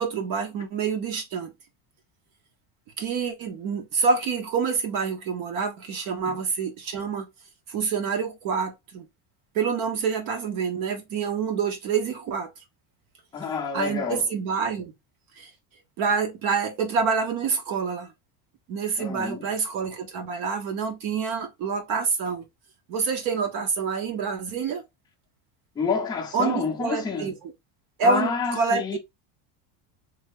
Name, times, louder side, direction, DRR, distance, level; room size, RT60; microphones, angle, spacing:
voice 1, 0.0-1.5 3.0-7.3 7.7-9.1 9.5-12.5 13.7-14.9 15.4-15.5 16.0-18.1 18.7-22.5 22.9-24.8 26.3-27.3 28.0-29.0, right 5 dB, 50° right, 0.8 m, -27 dB
voice 2, 13.3-14.2 19.0-19.5 25.8-27.3 28.0-29.0, left 5 dB, 10° left, 0.4 m, -28 dB
3.3 x 2.1 x 3.5 m
cardioid pair, 165°, 45 cm